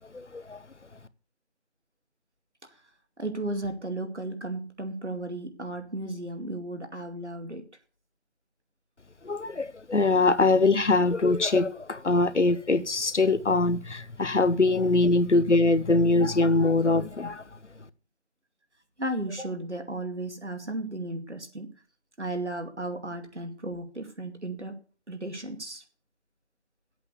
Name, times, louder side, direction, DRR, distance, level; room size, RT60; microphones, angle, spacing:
voice 1, 0.1-0.6 9.2-17.4, left 3 dB, 90° left, 1.0 m, -23 dB
voice 2, 3.2-7.7 14.8-14.9 19.0-21.7 22.2-24.8 25.1-25.8, right 1 dB, 80° right, 2.4 m, -34 dB
8.4 x 8.1 x 7.9 m
figure-of-eight pair, 175°, 34 cm